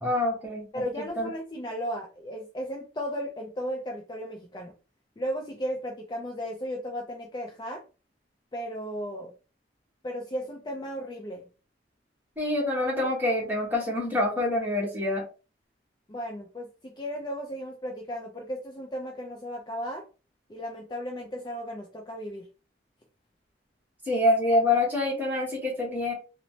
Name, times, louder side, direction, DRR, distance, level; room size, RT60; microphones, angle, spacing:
voice 1, 0.0-0.8 1.2-1.3 12.4-15.2 24.1-26.1, left 2 dB, 10° right, -2 dB, 0.9 m, -26 dB
voice 2, 0.7-4.7 5.2-7.8 8.5-9.3 10.0-11.5 16.1-20.0 20.5-22.5, equal, 25° left, 0 dB, 0.4 m, -35 dB
3.0 x 2.0 x 2.7 m, 0.33 s
head